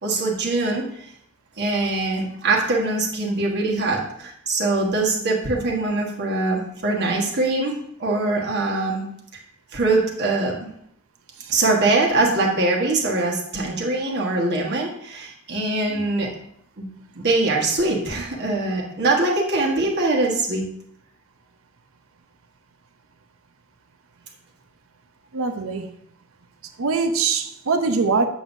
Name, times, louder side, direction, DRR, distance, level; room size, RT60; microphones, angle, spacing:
voice 1, 0.0-0.9 1.6-9.1 9.7-10.7 11.5-16.3 16.8-16.9 17.1-20.7, right 2 dB, 55° right, -1 dB, 1.4 m, -22 dB
voice 2, 25.3-25.9 26.8-28.3, right 4 dB, 80° right, 8 dB, 0.7 m, -22 dB
7.7 x 7.1 x 2.7 m, 0.71 s
head